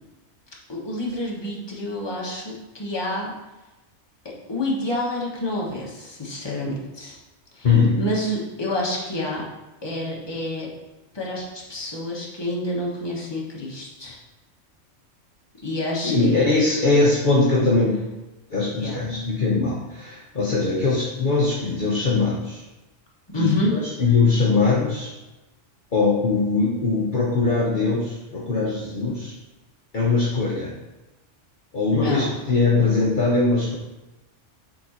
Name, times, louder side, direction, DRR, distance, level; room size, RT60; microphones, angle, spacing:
voice 1, 0.7-3.3 4.2-7.2 7.5-7.7 8.0-9.4 9.8-10.7 11.1-14.2 15.6-16.5 18.7-19.0 23.3-23.7 31.9-32.3, left 1 dB, 20° left, -4 dB, 1.3 m, -28 dB
voice 2, 7.6-8.0 16.0-18.1 18.5-22.6 23.3-25.1 25.9-29.3 29.9-30.7 31.7-33.8, left 3 dB, 45° left, -5 dB, 1.0 m, -21 dB
7.5 x 3.8 x 4.3 m, 1.0 s
omnidirectional pair, 1.3 m